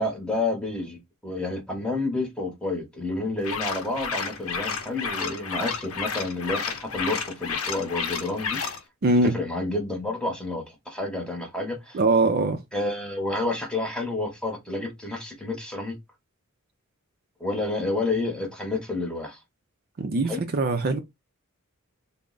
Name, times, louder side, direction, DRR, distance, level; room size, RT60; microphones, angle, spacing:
voice 1, 0.0-8.6 9.2-12.0 12.7-16.0 17.4-19.4 20.2-20.4, left 2 dB, 5° left, 0.9 m, -30 dB
sound 1, 3.4-8.8, left 5 dB, 85° left, 0.7 m, -31 dB
voice 2, 9.0-9.4 11.9-12.6 20.0-21.0, right 2 dB, 45° right, 0.5 m, -22 dB
3.4 x 2.1 x 3.8 m
head